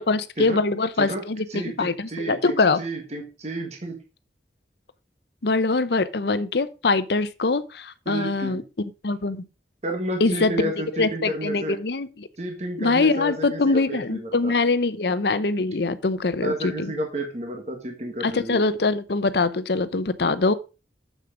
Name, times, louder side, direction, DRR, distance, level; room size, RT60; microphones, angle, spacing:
voice 1, 0.0-2.8 5.4-9.4 10.2-10.7 11.0-12.3 12.8-16.9 18.2-20.5, left 3 dB, 65° left, 0.7 m, -23 dB
voice 2, 1.5-4.0 8.0-8.6 9.8-11.8 12.4-14.5 16.4-18.6, right 1 dB, 40° right, 1.6 m, -31 dB
7.5 x 6.6 x 5.0 m
head